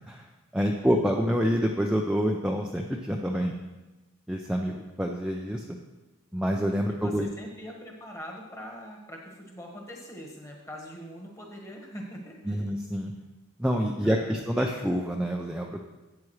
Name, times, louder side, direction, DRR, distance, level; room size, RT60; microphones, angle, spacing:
voice 1, 0.5-3.5 4.3-5.8 6.3-7.3 12.5-13.1 13.6-15.8, equal, 5° right, 0 dB, 0.4 m, -27 dB
voice 2, 6.9-12.7 14.0-14.4, equal, 15° left, 0 dB, 1.4 m, -43 dB
12.5 x 8.4 x 3.2 m, 1.1 s
head